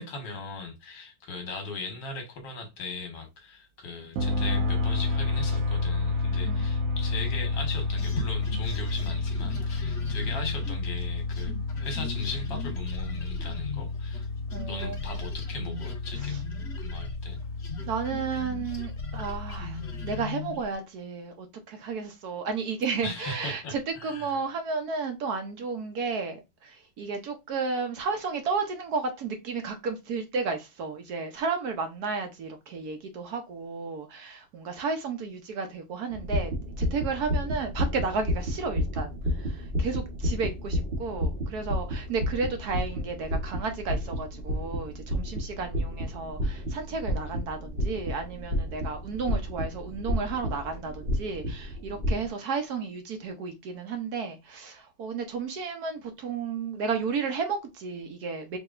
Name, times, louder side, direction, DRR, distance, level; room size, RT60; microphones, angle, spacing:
voice 1, 0.0-11.5 11.8-14.3 14.7-16.4 16.8-17.4 23.0-24.4, left 3 dB, 75° left, 1.9 m, -38 dB
sound 1, 4.2-20.2, left 3 dB, 85° right, 1.5 m, -31 dB
sound 2, 8.0-14.3 14.5-20.7, left 4 dB, 40° left, 1.2 m, -40 dB
voice 2, 14.5-14.9 16.3-16.4 17.9-36.5 36.8-58.6, right 4 dB, 65° right, 1.2 m, -33 dB
sound 3, 36.1-52.3, equal, 35° right, 1.1 m, -31 dB
4.9 x 2.9 x 2.4 m
omnidirectional pair, 2.0 m